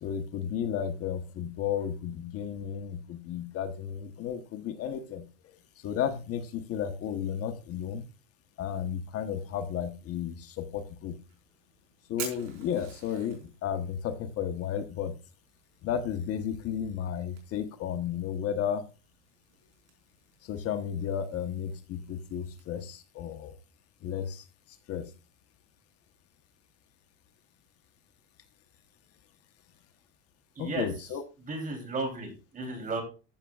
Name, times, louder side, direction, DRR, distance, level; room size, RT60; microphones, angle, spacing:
voice 1, 0.0-5.3 5.8-8.1 8.6-11.2 12.1-15.2 15.8-18.8 20.4-23.5 24.0-24.5 24.9-25.1 30.6-31.2, left 8 dB, 50° left, 7 dB, 1.1 m, -33 dB
Fire, 11.1-22.7, right 8 dB, 70° right, 4.7 m, -50 dB
voice 2, 30.6-30.9 31.4-33.0, right 3 dB, 25° right, 4 dB, 3.4 m, -34 dB
15.0 x 6.6 x 2.4 m, 0.32 s
cardioid pair, 135°, 31 cm